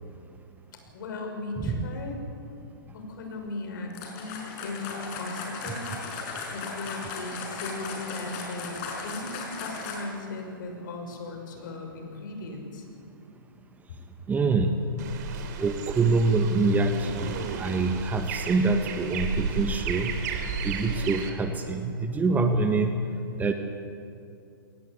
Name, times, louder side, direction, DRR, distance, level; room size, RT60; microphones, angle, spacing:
voice 1, 0.9-2.2 2.9-5.9 6.5-8.8 9.0-12.8, left 3 dB, 60° left, 4 dB, 6.0 m, -37 dB
sound 1, 3.9-10.2, left 4 dB, 40° left, 5.5 m, -37 dB
voice 2, 14.3-14.7 15.6-20.1 20.6-22.9 23.4-23.5, right 3 dB, 15° right, 6 dB, 1.4 m, -25 dB
sound 2, 15.0-21.3, right 6 dB, 50° right, 3.1 m, -33 dB
22.5 x 19.0 x 8.5 m, 2.5 s
hypercardioid pair, 125°, 12 cm